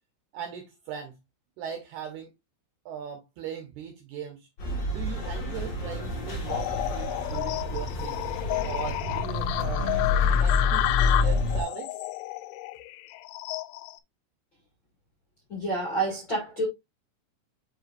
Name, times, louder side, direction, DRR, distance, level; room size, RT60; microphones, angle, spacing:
voice 1, 0.3-1.2 1.6-2.3 2.9-4.5 4.9-8.2 8.6-10.1 10.4-12.0, right 8 dB, 75° right, 2.4 m, -39 dB
sound 1, 4.6-11.6, left 3 dB, 65° left, 1.7 m, -28 dB
sound 2, 6.5-14.0, left 17 dB, 90° left, 3.2 m, -31 dB
voice 2, 15.5-16.7, right 2 dB, 40° left, 1.7 m, -28 dB
7.4 x 5.6 x 2.5 m
omnidirectional pair, 5.8 m